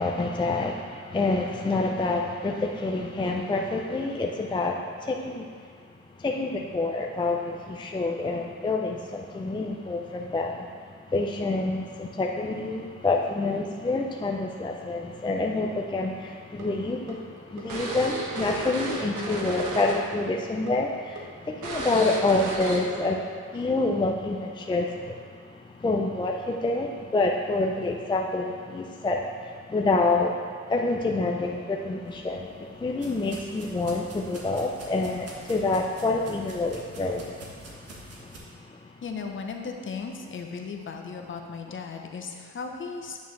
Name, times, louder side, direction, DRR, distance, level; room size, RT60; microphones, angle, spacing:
voice 1, 0.0-5.4 6.2-10.7 11.1-23.2 23.5-25.2 25.8-30.4 30.7-37.4 38.2-38.3, left 2 dB, 15° left, 1 dB, 0.5 m, -27 dB
sound 1, 16.6-20.2 20.5-20.7 21.2-21.3 21.6-23.1, right 2 dB, 80° right, 1.2 m, -33 dB
sound 2, 32.0-38.4, right 2 dB, 55° right, 1.6 m, -47 dB
voice 2, 39.0-43.2, left 5 dB, 40° left, 3 dB, 0.9 m, -36 dB
9.3 x 6.3 x 3.2 m, 2.1 s
cardioid pair, 90°, 30 cm